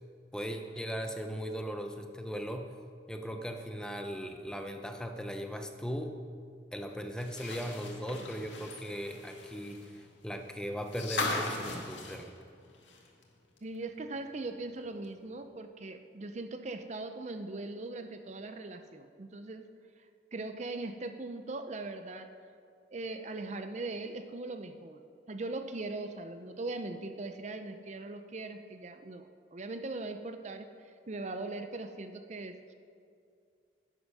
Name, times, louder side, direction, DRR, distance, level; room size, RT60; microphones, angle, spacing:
voice 1, 0.3-2.7 3.1-6.2 6.7-12.3, equal, 5° left, 5 dB, 0.6 m, -38 dB
sound 1, 7.2-13.2 13.6-13.7 15.0-15.1, left 2 dB, 85° left, 1.9 m, -39 dB
voice 2, 13.6-19.7 20.3-22.3 22.9-25.0 25.3-32.7, right 2 dB, 40° right, 8 dB, 0.6 m, -40 dB
10.5 x 9.9 x 6.1 m, 2.4 s
head